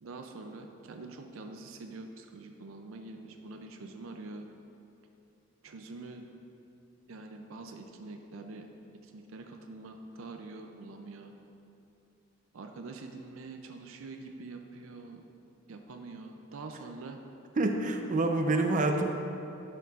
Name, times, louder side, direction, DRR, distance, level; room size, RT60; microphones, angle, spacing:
voice 1, 0.0-4.5 5.6-6.3 7.1-8.7 9.0-11.3 12.5-15.2 15.7-17.2, right 3 dB, 85° right, 4 dB, 0.5 m, -45 dB
voice 2, 17.6-19.1, right 2 dB, 40° right, 4 dB, 0.6 m, -27 dB
12.0 x 6.8 x 2.5 m, 2.8 s
head